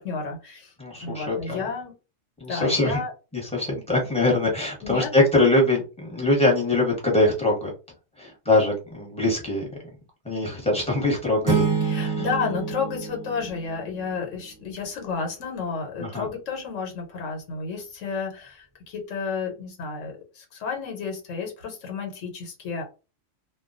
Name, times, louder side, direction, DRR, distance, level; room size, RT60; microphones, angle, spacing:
voice 1, 0.0-0.7 1.0-1.9 2.5-3.1 4.8-5.1 11.8-22.8, left 5 dB, 85° left, 3 dB, 1.1 m, -31 dB
voice 2, 0.8-1.6 2.4-3.0 3.5-7.7 8.2-9.7 10.2-11.6 12.0-12.2 16.0-16.3, left 2 dB, 5° left, -2 dB, 0.8 m, -23 dB
sound 1, 11.4-14.3, right 5 dB, 25° right, 0.4 m, -27 dB
2.3 x 2.2 x 2.4 m, 0.31 s
omnidirectional pair, 1.3 m